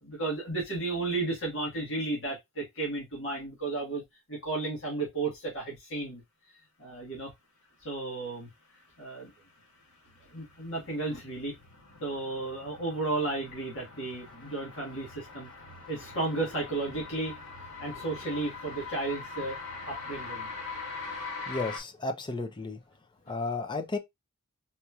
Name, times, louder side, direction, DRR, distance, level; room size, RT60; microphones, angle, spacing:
voice 1, 0.0-4.0 4.3-6.2 6.8-7.3 7.8-8.5 9.0-9.3 10.3-11.5 12.0-15.5 15.9-17.3 17.8-19.6 19.8-20.5, right 3 dB, 60° left, 1.6 m, -33 dB
sound 1, 9.0-21.8, left 4 dB, 85° left, 1.6 m, -43 dB
voice 2, 21.5-22.8 23.3-24.0, left 3 dB, 20° left, 0.5 m, -33 dB
4.2 x 2.9 x 2.4 m
head